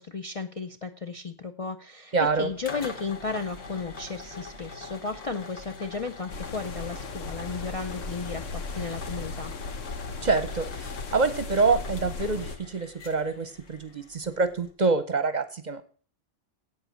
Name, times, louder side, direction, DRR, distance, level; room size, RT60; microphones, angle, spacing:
voice 1, 0.0-9.5, left 4 dB, 40° left, 5 dB, 0.5 m, -34 dB
voice 2, 2.1-2.5 10.2-15.8, right 4 dB, 45° right, 12 dB, 0.8 m, -26 dB
sound 1, 2.2-14.7, left 3 dB, 65° left, 1.7 m, -44 dB
sound 2, 6.3-12.6, left 3 dB, 90° left, 1.4 m, -36 dB
8.5 x 8.1 x 6.3 m, 0.42 s
omnidirectional pair, 1.2 m